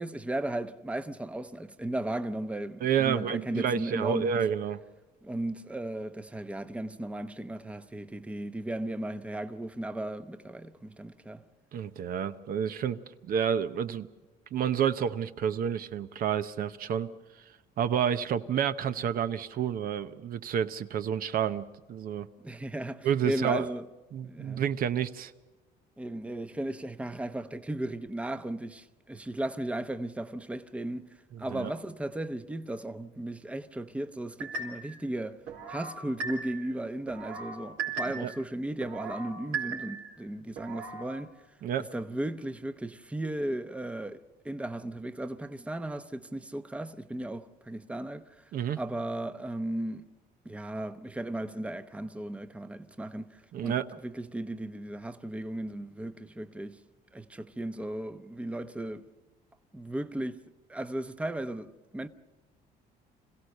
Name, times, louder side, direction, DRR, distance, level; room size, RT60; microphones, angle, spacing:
voice 1, 0.0-4.3 5.2-11.4 22.4-23.8 24.2-24.6 26.0-31.0 31.4-35.4 35.7-41.3 41.8-48.4 48.8-50.1 50.4-53.8 54.0-56.8 57.1-59.0 59.7-60.4 60.7-62.1, right 1 dB, 5° right, 0.8 m, -36 dB
voice 2, 2.8-4.8 11.7-14.1 14.5-17.1 17.8-22.3 23.0-23.7 24.1-25.3 31.3-31.7 38.2-38.3 41.6-41.9 48.5-48.8 53.5-53.9, right 8 dB, 60° right, 0.8 m, -29 dB
sound 1, 34.4-35.0 35.5-36.7 37.1-38.4 38.8-40.2 40.6-41.1, right 4 dB, 90° right, 3.9 m, -37 dB
26.5 x 16.0 x 6.7 m
cardioid pair, 110°, 17 cm